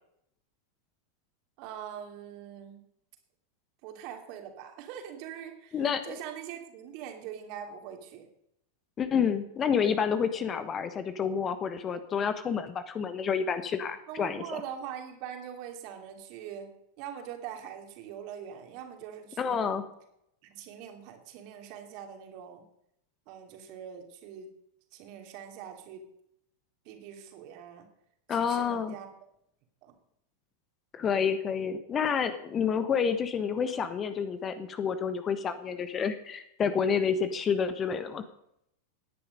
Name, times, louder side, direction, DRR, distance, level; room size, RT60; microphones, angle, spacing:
voice 1, 1.6-2.8 3.8-8.3 14.1-19.8 20.4-22.6 23.3-24.5 24.9-26.0 26.8-27.9 28.3-29.1 29.8-29.9, right 9 dB, 45° right, 4 dB, 2.9 m, -43 dB
voice 2, 5.7-6.2 9.0-14.6 19.4-19.8 28.3-28.9 30.9-38.2, left 6 dB, 25° left, 11 dB, 1.2 m, -29 dB
17.5 x 10.0 x 5.3 m, 0.76 s
figure-of-eight pair, 90°, 0 cm